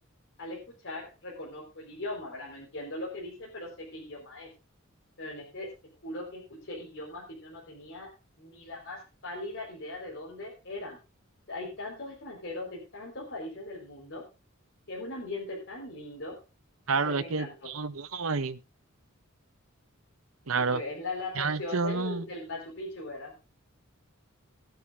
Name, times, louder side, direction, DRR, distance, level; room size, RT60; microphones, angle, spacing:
voice 1, 0.4-4.5 5.2-5.7 6.0-8.1 8.4-11.0 11.5-14.2 14.9-16.3 16.9-17.7 20.5-23.3, left 2 dB, 60° left, -2 dB, 4.1 m, -39 dB
voice 2, 16.9-18.6 20.5-20.8 21.4-22.2, right 4 dB, 80° right, 11 dB, 1.1 m, -29 dB
20.0 x 9.2 x 2.5 m, 0.31 s
head